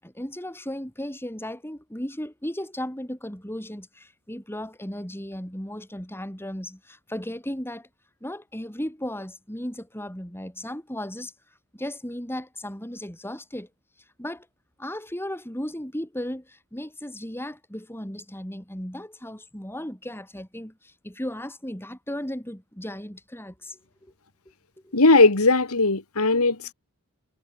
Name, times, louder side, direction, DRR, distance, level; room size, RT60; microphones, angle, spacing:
voice 1, 0.0-7.9 8.2-11.3 11.7-13.7 14.2-14.5 14.8-24.1 24.8-25.0, left 1 dB, 10° left, 6.7 m, -35 dB
voice 2, 24.9-26.7, left 3 dB, 70° left, 2.2 m, -18 dB
head